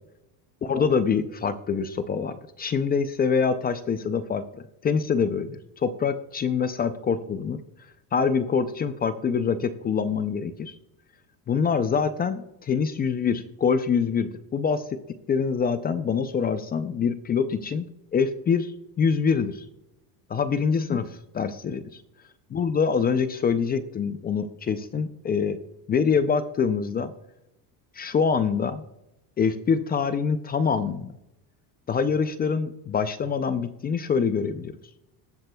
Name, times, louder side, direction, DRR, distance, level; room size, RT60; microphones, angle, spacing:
voice 1, 0.6-7.6 8.1-10.7 11.5-14.8 15.3-17.9 18.1-18.7 19.0-19.6 20.3-21.8 22.5-25.6 25.9-27.1 28.0-28.8 29.4-31.1 31.9-34.7, left 6 dB, 20° left, 12 dB, 0.3 m, -25 dB
19.5 x 7.6 x 2.2 m, 0.87 s
supercardioid pair, 125°, 49 cm